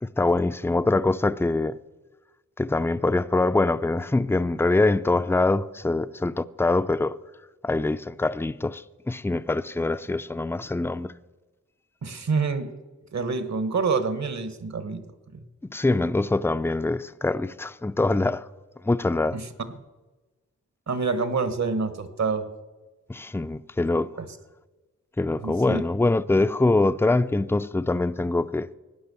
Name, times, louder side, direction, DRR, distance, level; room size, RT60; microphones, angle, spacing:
voice 1, 0.0-1.8 2.6-7.2 7.6-11.1 15.7-18.5 18.8-19.4 23.1-24.1 25.2-28.7, left 2 dB, 10° left, 0.5 m, -24 dB
voice 2, 12.0-12.7 13.1-15.0 15.3-15.4 19.3-19.5 20.9-22.4 25.4-25.8, right 4 dB, 65° right, 1.4 m, -27 dB
17.5 x 9.7 x 7.0 m
wide cardioid pair, 70°, 30 cm